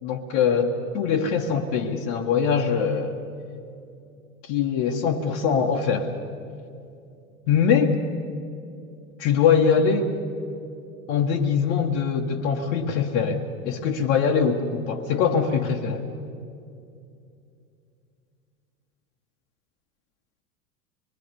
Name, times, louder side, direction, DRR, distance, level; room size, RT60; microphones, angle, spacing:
voice 1, 0.0-3.2 4.4-6.1 7.5-7.9 9.2-10.1 11.1-16.0, left 6 dB, 50° left, 1 dB, 1.5 m, -22 dB
25.0 x 21.5 x 6.9 m, 2.5 s
figure-of-eight pair, 85°, 43 cm